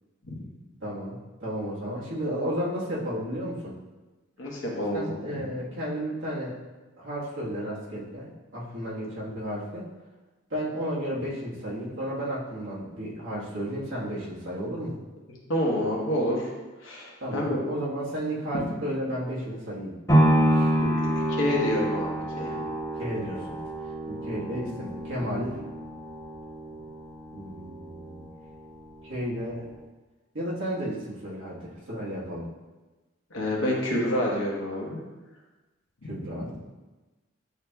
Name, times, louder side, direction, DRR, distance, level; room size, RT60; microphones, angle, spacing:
voice 1, 0.8-3.8 4.9-6.6 7.0-9.9 10.5-15.0 17.2-20.0 20.5-20.7 22.9-23.6 24.1-25.6 27.3-28.3 29.0-29.7 30.3-32.5 36.0-36.6, equal, 75° right, -7 dB, 1.3 m, -33 dB
voice 2, 4.4-5.4 15.5-16.5 16.8-17.6 18.5-18.6 20.8-21.0 21.3-22.5 33.3-35.0 36.0-36.1, left 1 dB, 75° left, -3 dB, 1.1 m, -28 dB
sound 1, 20.1-28.2 28.7-28.8, equal, 15° left, 1.1 m, -27 dB
7.9 x 2.8 x 2.3 m, 1.2 s
head